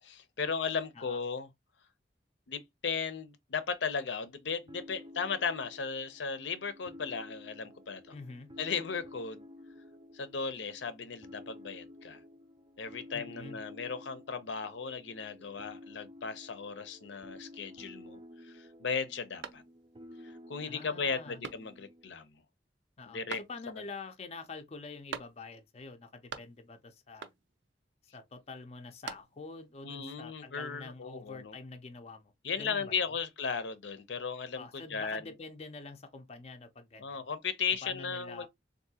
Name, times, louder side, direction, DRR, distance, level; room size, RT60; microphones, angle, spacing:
voice 1, 0.0-1.5 2.5-8.0 8.6-9.5 10.1-12.2 12.8-19.6 20.2-22.4 23.1-23.4 29.8-31.6 32.4-35.2 37.0-38.5, left 5 dB, 80° left, 0.6 m, -36 dB
sound 1, 4.7-22.1, left 1 dB, 25° right, 0.4 m, -52 dB
voice 2, 8.1-8.5 13.1-13.6 20.6-21.4 23.0-23.2 23.5-27.3 28.1-32.3 32.6-33.0 34.6-37.2 37.8-38.5, left 3 dB, 35° left, 0.5 m, -46 dB
sound 2, 19.4-20.1 20.5-20.6 21.4-22.0 23.3-23.9 25.1-25.7 26.0-26.8 27.2-27.7 28.7-29.6, right 6 dB, 80° right, 0.5 m, -45 dB
3.6 x 2.6 x 2.7 m
head